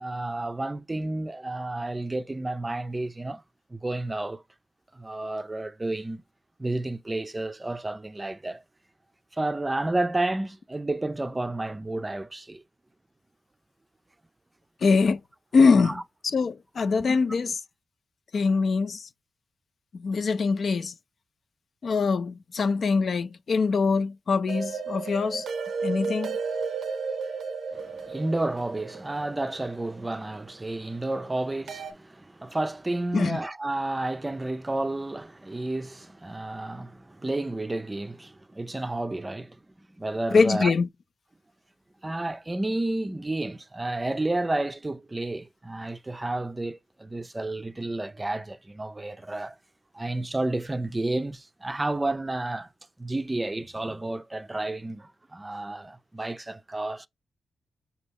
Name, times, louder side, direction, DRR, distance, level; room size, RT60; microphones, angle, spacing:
voice 1, 0.0-3.4 3.7-4.4 4.9-6.2 6.6-8.6 9.3-12.6 15.8-16.0 17.1-17.2 27.7-39.6 40.0-40.7 42.0-49.6 49.9-52.7 53.0-57.1, right 2 dB, 20° right, 0.4 m, -31 dB
voice 2, 14.8-15.2 15.5-16.0 16.3-17.6 18.3-19.1 19.9-20.9 21.8-25.5 25.8-26.4 33.1-33.4 40.3-40.9, left 4 dB, 60° left, 0.3 m, -23 dB
sound 1, 24.5-30.5 31.7-31.9, right 5 dB, 75° right, 0.5 m, -33 dB
5.2 x 2.3 x 3.5 m
cardioid pair, 55°, 0 cm